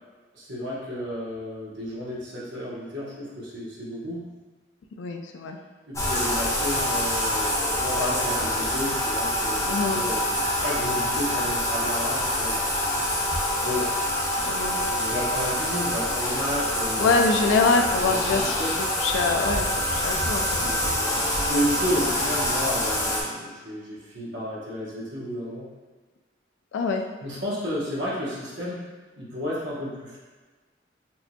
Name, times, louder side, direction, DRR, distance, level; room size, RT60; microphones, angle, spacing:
voice 1, 0.3-4.2 5.9-12.7 13.6-13.9 14.8-18.7 20.5-25.7 27.2-28.8 29.1-30.2, equal, 70° right, -6 dB, 1.0 m, -32 dB
voice 2, 5.0-5.6 9.7-10.0 14.5-14.8 17.0-18.5 19.0-19.7 19.9-20.8 26.7-27.0, left 4 dB, 80° left, 4 dB, 0.4 m, -24 dB
Bathtub (filling or washing), 5.9-23.2, left 1 dB, 15° left, 0.5 m, -26 dB
4.4 x 2.7 x 2.3 m, 1.3 s
head